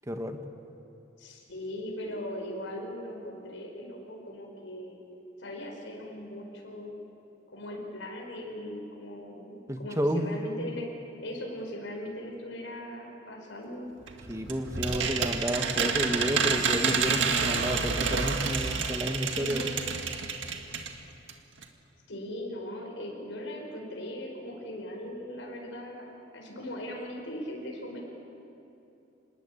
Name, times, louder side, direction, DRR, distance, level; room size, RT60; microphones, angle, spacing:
voice 1, 0.1-0.4 9.7-10.3 14.3-19.7, equal, 15° right, 5 dB, 1.5 m, -31 dB
voice 2, 1.2-5.0 5.4-6.9 7.5-10.9 11.2-13.9 19.3-19.8 22.1-28.0, left 1 dB, 85° left, 0 dB, 5.1 m, -39 dB
sound 1, 14.1-21.0 21.3-21.4 21.6-21.7, right 5 dB, 75° right, 1.9 m, -29 dB
27.0 x 20.5 x 8.5 m, 2.8 s
head